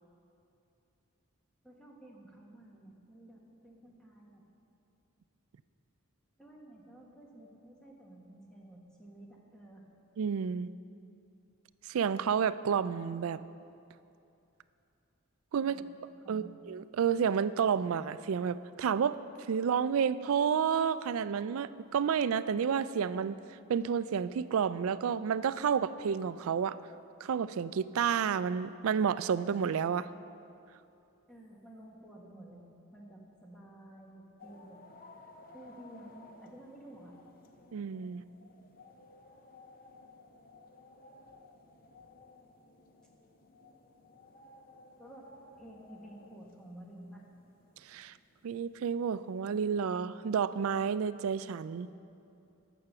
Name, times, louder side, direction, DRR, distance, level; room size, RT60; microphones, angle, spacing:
voice 1, 1.6-4.4 6.4-9.9 15.6-15.9 16.2-16.5 31.3-32.6 32.9-34.8 35.5-37.1 45.0-45.3 45.6-47.2, right 1 dB, 5° left, -2 dB, 1.4 m, -52 dB
voice 2, 10.2-10.7 11.9-13.4 15.5-15.8 16.3-19.2 19.5-23.4 23.7-26.8 27.2-30.1 37.7-38.2 47.9-48.1 48.4-51.9, right 7 dB, 70° right, 15 dB, 0.3 m, -30 dB
sound 1, 34.4-49.4, left 2 dB, 40° left, 0.7 m, -57 dB
14.5 x 5.9 x 6.7 m, 2.7 s
head